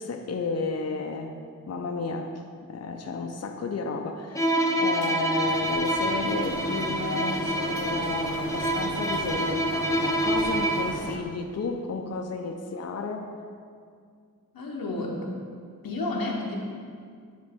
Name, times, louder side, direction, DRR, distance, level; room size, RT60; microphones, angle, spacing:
voice 1, 0.0-1.3 1.7-2.3 2.7-13.3, left 4 dB, 50° left, 4 dB, 0.5 m, -32 dB
Bowed string instrument, 4.3-11.0, right 1 dB, 10° left, 0.7 m, -27 dB
Printer, 5.0-11.2, right 2 dB, 75° right, 0.8 m, -37 dB
voice 2, 14.5-15.2 15.8-16.6, left 2 dB, 90° left, -1 dB, 1.0 m, -30 dB
9.7 x 3.8 x 3.5 m, 2.2 s
cardioid pair, 45°, 34 cm